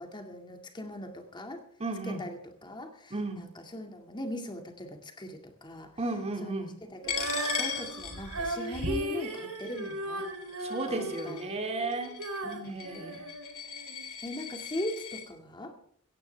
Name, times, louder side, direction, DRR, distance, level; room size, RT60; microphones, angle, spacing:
voice 1, 0.1-1.6 2.0-5.9 6.4-7.3 7.6-10.3 10.9-11.5 12.4-13.3 14.2-15.7, left 1 dB, 20° left, 4 dB, 2.2 m, -40 dB
voice 2, 1.8-2.3 3.1-3.5 6.0-6.7 10.6-12.2 12.6-13.2, right 2 dB, 30° right, 4 dB, 2.4 m, -34 dB
Female singing, 7.0-14.1, right 2 dB, 80° right, 3.4 m, -36 dB
Coin (dropping), 7.1-15.2, left 8 dB, 65° left, 3.3 m, -39 dB
17.0 x 15.0 x 3.4 m, 0.66 s
head